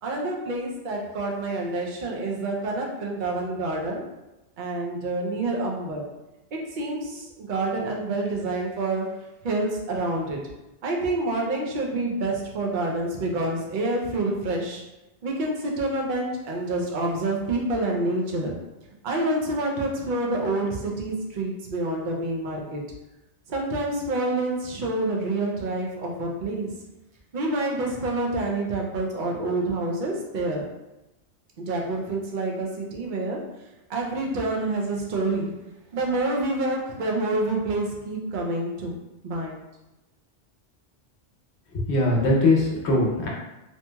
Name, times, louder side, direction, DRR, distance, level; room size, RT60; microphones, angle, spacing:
voice 1, 0.0-4.0 4.6-6.0 6.5-9.1 9.4-10.4 10.8-14.8 15.2-18.6 19.0-22.8 23.5-26.7 27.3-30.6 31.6-33.4 33.9-35.5 35.9-39.6, right 2 dB, 55° right, -1 dB, 0.6 m, -27 dB
voice 2, 41.7-43.3, left 2 dB, 70° left, -3 dB, 1.0 m, -21 dB
2.8 x 2.7 x 2.2 m, 0.98 s
omnidirectional pair, 1.2 m